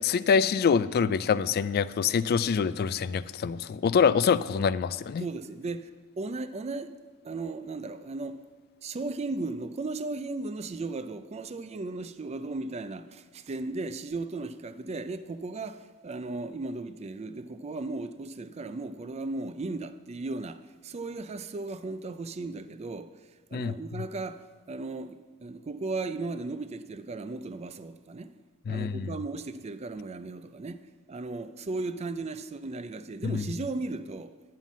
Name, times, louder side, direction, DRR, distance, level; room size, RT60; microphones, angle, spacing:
voice 1, 0.0-5.3 23.5-24.0 28.7-29.1 33.2-33.5, left 6 dB, 45° left, 0.3 m, -25 dB
voice 2, 5.2-5.9 6.2-6.9 7.2-8.4 8.8-23.1 23.5-24.4 24.7-28.3 28.7-30.8 31.1-34.3, right 3 dB, 30° right, 0.4 m, -36 dB
10.5 x 5.7 x 7.2 m
head